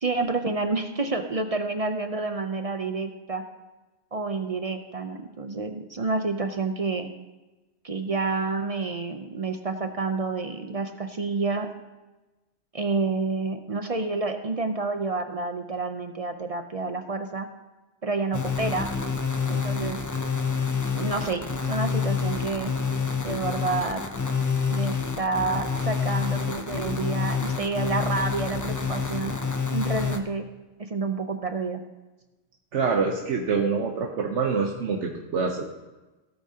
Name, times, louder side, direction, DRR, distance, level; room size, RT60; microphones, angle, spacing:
voice 1, 0.0-3.4 4.1-7.1 7.8-11.7 12.7-17.5 18.0-18.9 19.5-20.0 20.9-22.7 23.2-24.0 24.7-29.3 29.7-30.5 30.8-31.8, right 3 dB, 40° right, 7 dB, 0.5 m, -29 dB
sound 1, 18.3-30.2, left 5 dB, 25° left, 0.4 m, -28 dB
voice 2, 32.7-35.6, right 5 dB, 70° right, 1 dB, 1.2 m, -26 dB
16.5 x 8.4 x 2.8 m, 1.1 s
omnidirectional pair, 1.3 m